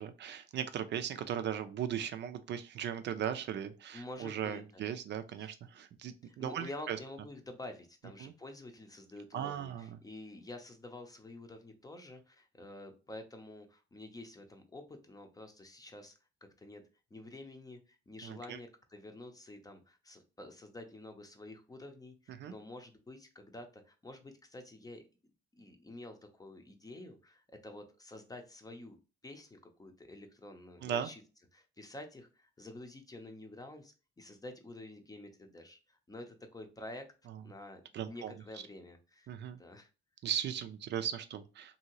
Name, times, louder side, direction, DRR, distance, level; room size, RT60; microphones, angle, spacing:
voice 1, 0.0-7.0 8.2-8.3 9.3-10.0 18.2-18.6 22.4-22.5 30.8-31.1 37.9-38.3 39.3-39.6 40.2-41.8, right 9 dB, 60° right, 9 dB, 0.4 m, -38 dB
voice 2, 3.9-4.9 5.4-5.5 6.2-16.1 16.6-16.8 17.1-25.0 25.5-29.0 29.2-31.2 31.5-37.1 37.4-39.3 39.6-39.9, left 2 dB, 20° left, 6 dB, 0.6 m, -49 dB
2.7 x 2.7 x 2.9 m, 0.32 s
cardioid pair, 90°, 20 cm